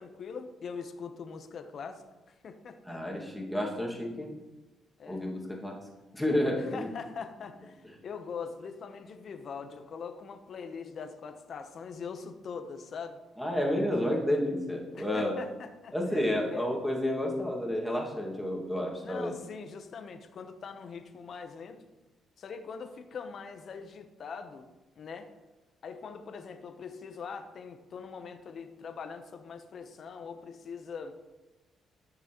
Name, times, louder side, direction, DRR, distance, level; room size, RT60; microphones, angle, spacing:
voice 1, 0.0-3.0 5.0-5.3 6.5-13.2 14.9-16.7 19.0-21.8 22.4-24.7 25.0-25.3 25.8-31.2, left 5 dB, 55° left, 7 dB, 0.8 m, -42 dB
voice 2, 2.9-4.3 5.1-5.8 6.1-6.9 13.4-15.3 15.9-19.3, left 1 dB, 5° left, -2 dB, 1.9 m, -30 dB
13.0 x 6.0 x 3.0 m, 1.1 s
cardioid pair, 90°, 0 cm